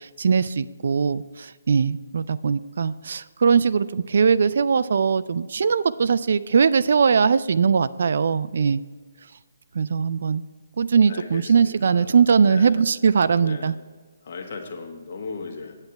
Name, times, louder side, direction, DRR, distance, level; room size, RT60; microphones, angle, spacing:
voice 1, 0.0-8.8 9.8-10.4 10.8-13.8, right 6 dB, 60° right, 16 dB, 0.3 m, -20 dB
voice 2, 11.1-12.9 13.4-13.7 14.2-15.7, left 4 dB, 50° left, 3 dB, 1.4 m, -37 dB
8.7 x 8.2 x 4.6 m, 1.5 s
figure-of-eight pair, 145°, 0 cm